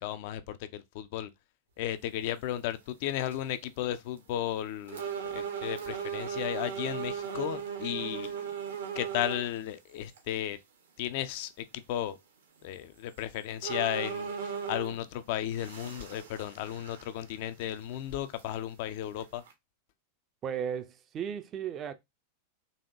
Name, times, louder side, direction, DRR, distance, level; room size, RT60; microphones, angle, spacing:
voice 1, 0.0-1.3 1.8-8.3 9.0-10.6 11.0-12.2 12.6-19.4, left 12 dB, 50° left, 0.4 m, -34 dB
sound 1, 2.5-2.6 3.1-3.5 4.2-4.3 4.9-9.5 10.2-10.3 12.6-12.7 13.2-13.3 13.6-15.1 15.5-17.3 17.6-17.7 18.4-18.5 19.2-19.5, right 7 dB, 65° right, 0.9 m, -37 dB
voice 2, 20.4-21.9, right 8 dB, 30° right, 0.5 m, -35 dB
4.0 x 2.8 x 2.6 m
figure-of-eight pair, 90°, 0 cm